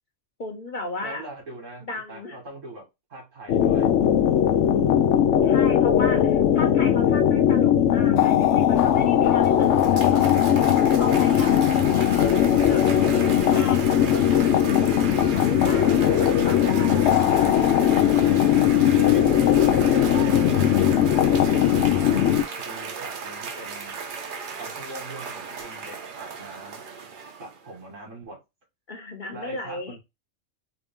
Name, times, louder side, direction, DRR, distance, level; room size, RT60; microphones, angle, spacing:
voice 1, 0.4-1.2 1.8-2.4 4.8-10.2 10.6-12.3 12.7-12.8 13.1-15.1 15.3-16.9 28.9-30.0, left 2 dB, 45° left, 3 dB, 0.9 m, -36 dB
voice 2, 1.0-3.9 18.0-22.1 22.6-24.0 24.6-26.8 27.4-28.4 29.3-30.0, right 2 dB, 80° right, -1 dB, 2.1 m, -42 dB
sound 1, 3.5-22.4, left 10 dB, 75° left, 0.9 m, -19 dB
Cheering / Applause, 9.1-27.8, right 5 dB, 50° right, 0.7 m, -36 dB
3.9 x 2.5 x 3.6 m, 0.22 s
omnidirectional pair, 1.3 m